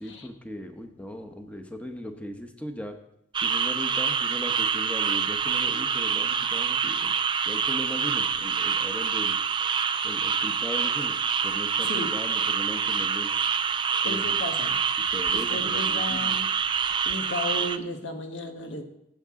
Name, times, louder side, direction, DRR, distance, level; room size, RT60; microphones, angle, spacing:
voice 1, 0.0-3.0 3.4-7.2 7.4-9.4 10.0-11.1 11.4-13.4 14.0-14.4 15.1-16.4, left 1 dB, 10° left, 5 dB, 1.0 m, -38 dB
sound 1, 3.3-17.8, right 7 dB, 25° right, 0.4 m, -26 dB
voice 2, 14.0-16.5 17.0-18.8, left 1 dB, 90° left, 5 dB, 1.3 m, -34 dB
15.5 x 8.1 x 3.7 m, 0.80 s
head